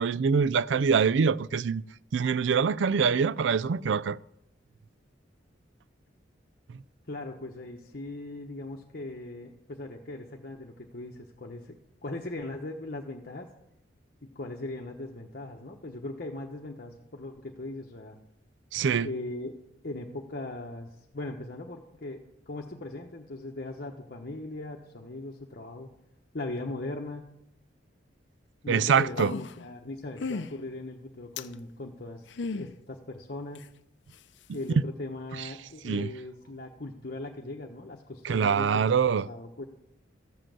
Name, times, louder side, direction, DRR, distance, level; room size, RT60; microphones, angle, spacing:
voice 1, 0.0-1.8 2.1-4.2 18.7-19.1 28.7-29.3 35.8-36.1 38.2-39.2, right 6 dB, 75° right, 0.4 m, -24 dB
voice 2, 7.1-13.5 14.2-18.2 19.0-19.6 19.8-25.9 26.3-27.3 28.6-32.3 32.5-33.7 34.5-39.6, left 2 dB, 55° left, 1.1 m, -39 dB
sound 1, 29.0-29.7 30.2-30.5 31.4-31.5 32.3-32.7 33.5-33.6, left 4 dB, 70° left, 0.6 m, -34 dB
14.0 x 7.6 x 7.6 m
head